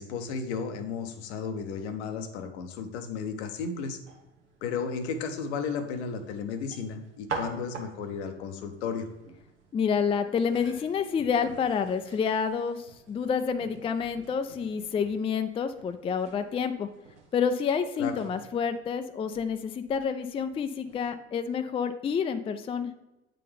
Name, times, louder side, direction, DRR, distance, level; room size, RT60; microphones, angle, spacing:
voice 1, 0.0-4.0 4.6-9.1 18.0-18.1, left 5 dB, 70° left, 7 dB, 0.8 m, -34 dB
sound 1, 4.0-21.1, right 4 dB, 90° right, 0.9 m, -46 dB
voice 2, 9.7-16.9 17.3-22.9, left 6 dB, 15° left, 9 dB, 0.4 m, -28 dB
8.3 x 3.8 x 3.3 m, 0.96 s
hypercardioid pair, 65°, 34 cm